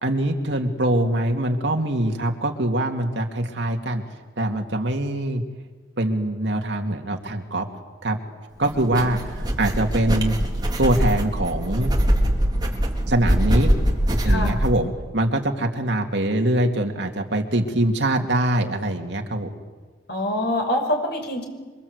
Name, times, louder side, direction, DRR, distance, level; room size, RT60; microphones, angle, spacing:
voice 1, 0.0-4.0 4.4-5.4 6.0-7.7 8.0-8.2 8.6-10.4 10.8-11.9 13.1-13.7 14.2-19.6, right 1 dB, 65° right, 3 dB, 2.6 m, -23 dB
sound 1, 8.6-14.7, equal, 20° right, 3.4 m, -22 dB
voice 2, 14.2-14.6 20.1-21.4, left 1 dB, 60° left, 4 dB, 5.9 m, -25 dB
27.5 x 25.0 x 8.2 m, 1.4 s
head